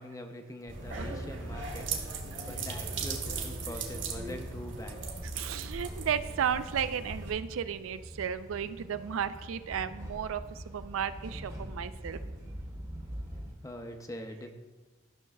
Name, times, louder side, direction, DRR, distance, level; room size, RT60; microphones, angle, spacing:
voice 1, 0.0-1.9 2.4-5.0 5.5-5.6 13.6-14.5, equal, 15° left, 5 dB, 0.5 m, -43 dB
sound 1, 0.7-13.5, equal, 15° right, 0.9 m, -45 dB
sound 2, 0.7-7.3, right 3 dB, 60° right, 1.3 m, -38 dB
voice 2, 5.3-12.2, right 8 dB, 85° right, 12 dB, 0.4 m, -34 dB
13.0 x 6.4 x 2.3 m, 1.3 s
head